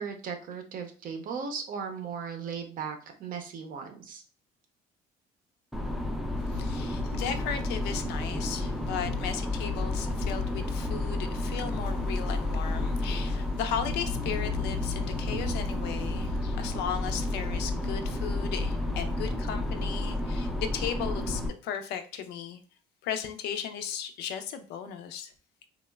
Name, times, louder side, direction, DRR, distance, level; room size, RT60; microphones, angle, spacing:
voice 1, 0.0-4.2, right 6 dB, 55° right, 0.6 m, -37 dB
sound 1, 5.7-21.5, left 2 dB, ahead, 0.3 m, -31 dB
voice 2, 6.5-22.6 23.0-25.3, left 8 dB, 80° left, 0.4 m, -36 dB
2.9 x 2.0 x 2.2 m
cardioid pair, 110°, 17 cm